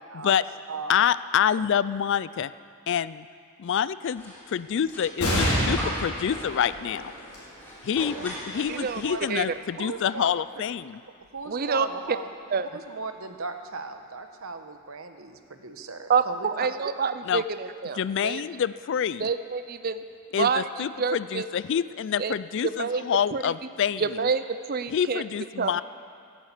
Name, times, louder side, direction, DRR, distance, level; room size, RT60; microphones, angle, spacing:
voice 1, 0.1-1.0 8.0-8.3 8.5-9.4 9.8-10.4 11.3-12.3 12.7-16.5, right 4 dB, 65° right, 7 dB, 1.1 m, -37 dB
voice 2, 0.9-2.5 2.9-3.3 3.6-7.1 7.8-11.0 17.3-17.4 17.9-19.3 20.3-24.3 24.9-25.8, left 8 dB, 55° left, 17 dB, 0.3 m, -27 dB
sound 1, 4.1-9.5, equal, 10° left, 3.4 m, -41 dB
sound 2, 5.2-12.1 12.7-12.8 13.9-14.5, equal, 80° left, 5.0 m, -32 dB
voice 3, 8.7-9.0 9.3-9.5 11.5-11.9 12.5-12.7 16.1-18.4 19.2-20.0 20.4-20.7 21.0-21.5 22.2-22.3 22.6-23.0 23.3-23.5 24.0-25.2 25.6-25.7, right 5 dB, 40° right, 11 dB, 0.5 m, -27 dB
12.5 x 11.5 x 8.2 m, 2.3 s
head